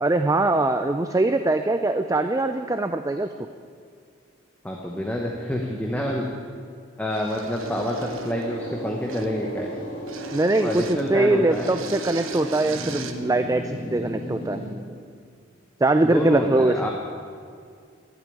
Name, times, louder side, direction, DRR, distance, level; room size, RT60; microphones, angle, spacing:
voice 1, 0.0-3.3 10.3-14.6 15.8-16.7, right 2 dB, 15° right, 9 dB, 0.3 m, -22 dB
voice 2, 4.6-6.3 7.0-9.7 10.6-11.7 16.0-16.9, equal, 5° left, -1 dB, 1.0 m, -27 dB
sound 1, 7.1-8.5 9.1-9.4 10.1-11.1 11.5-13.2, right 7 dB, 80° right, 1.1 m, -40 dB
sound 2, 7.6-14.7, equal, 45° left, 3.3 m, -35 dB
12.0 x 8.8 x 9.1 m, 2.2 s
head